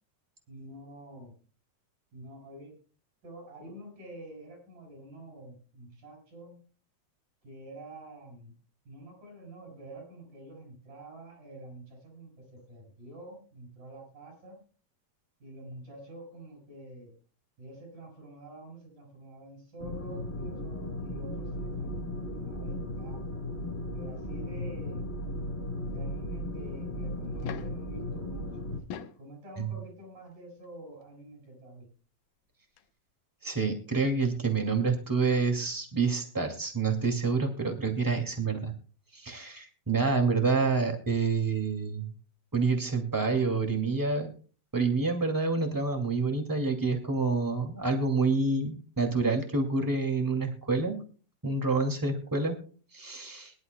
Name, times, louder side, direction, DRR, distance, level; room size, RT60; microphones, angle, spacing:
voice 1, 0.5-1.4 2.1-2.7 3.2-6.6 7.4-8.5 8.9-14.6 15.4-17.1 17.6-23.4 23.9-25.1 25.8-28.7 29.2-31.9, right 1 dB, 65° right, 1 dB, 8.5 m, -47 dB
sound 1, 19.8-28.8, left 1 dB, 35° left, 1.0 m, -36 dB
sound 2, 27.2-27.9 28.7-29.3 30.6-30.7 32.5-32.6 32.8-32.9, left 8 dB, 80° left, 2.8 m, -41 dB
voice 2, 33.4-38.7 39.1-42.1 42.5-44.3 44.7-51.0 51.4-52.6 52.9-53.5, right 4 dB, 10° right, 4 dB, 1.4 m, -28 dB
23.0 x 11.5 x 2.2 m, 0.39 s
omnidirectional pair, 4.0 m